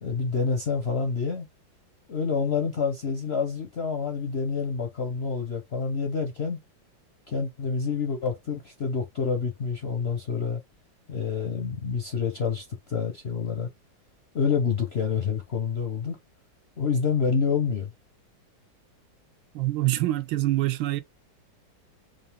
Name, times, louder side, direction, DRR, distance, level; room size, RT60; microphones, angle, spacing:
voice 1, 0.0-1.5 2.1-6.6 7.3-10.6 11.1-13.7 14.3-16.2 16.8-17.9, left 5 dB, 55° left, 0.7 m, -28 dB
voice 2, 19.5-21.0, right 16 dB, 90° right, 1.4 m, -25 dB
5.2 x 2.5 x 3.4 m
omnidirectional pair, 2.1 m